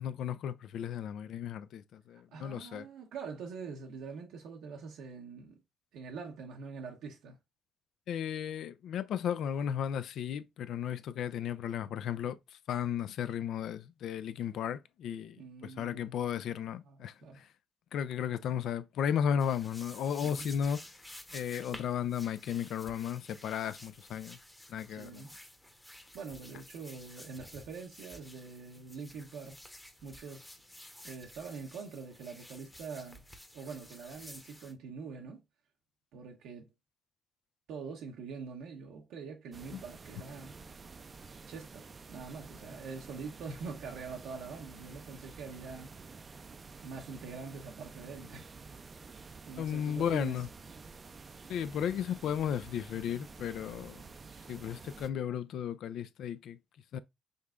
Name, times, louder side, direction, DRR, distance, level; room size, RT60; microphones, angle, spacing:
voice 1, 0.0-2.9 8.1-12.4 12.7-17.5 17.9-20.8 21.3-24.4 24.7-25.2 39.7-39.8 49.6-50.5 51.5-54.0 54.5-56.6 56.9-57.0, left 8 dB, 75° left, 0.4 m, -34 dB
voice 2, 2.1-5.6 5.9-7.4 15.4-16.2 16.8-17.4 20.2-20.5 24.9-25.3 26.1-29.6 30.0-30.5 31.0-33.2 33.5-35.4 36.1-36.7 37.7-40.6 41.5-45.9 46.8-48.5 49.5-50.4, right 5 dB, 85° right, 0.8 m, -44 dB
sound 1, 19.4-34.7, left 1 dB, 5° left, 0.8 m, -52 dB
sound 2, 39.5-55.1, right 4 dB, 35° right, 0.4 m, -50 dB
5.3 x 3.3 x 2.4 m
cardioid pair, 90°, 0 cm